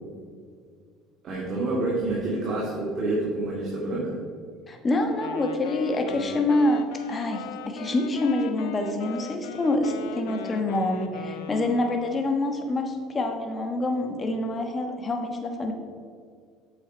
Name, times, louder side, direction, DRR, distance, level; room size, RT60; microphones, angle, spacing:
voice 1, 1.2-4.1, right 2 dB, 40° right, -5 dB, 2.1 m, -28 dB
voice 2, 4.7-15.7, left 2 dB, 25° left, 4 dB, 1.2 m, -26 dB
Wind instrument woodwind instrument, 5.1-12.4, left 6 dB, 90° left, 0.6 m, -39 dB
8.5 x 6.4 x 4.5 m, 2.1 s
cardioid pair, 120°, 0 cm